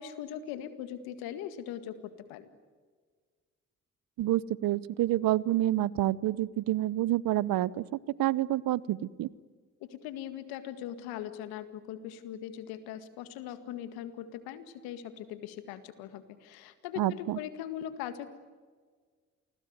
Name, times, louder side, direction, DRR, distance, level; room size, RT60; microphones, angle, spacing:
voice 1, 0.0-2.5 9.8-18.3, left 10 dB, 85° left, 11 dB, 2.0 m, -40 dB
voice 2, 4.2-9.3 17.0-17.4, right 14 dB, 70° right, 21 dB, 0.9 m, -28 dB
28.5 x 20.5 x 9.5 m, 1.5 s
hypercardioid pair, 50°, 36 cm